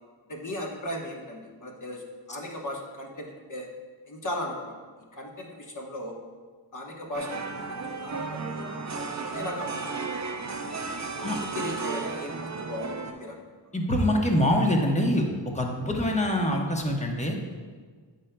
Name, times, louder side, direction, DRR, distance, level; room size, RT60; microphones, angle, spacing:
voice 1, 0.3-3.7 4.1-4.8 5.1-6.1 6.7-9.8 11.0-13.4, left 1 dB, 40° left, -1 dB, 1.1 m, -37 dB
sound 1, 7.1-13.1, right 4 dB, 40° right, 0.5 m, -34 dB
voice 2, 13.7-15.2 15.5-17.3, left 1 dB, 15° left, 1 dB, 0.9 m, -24 dB
8.8 x 5.3 x 2.2 m, 1.5 s
wide cardioid pair, 60°, 46 cm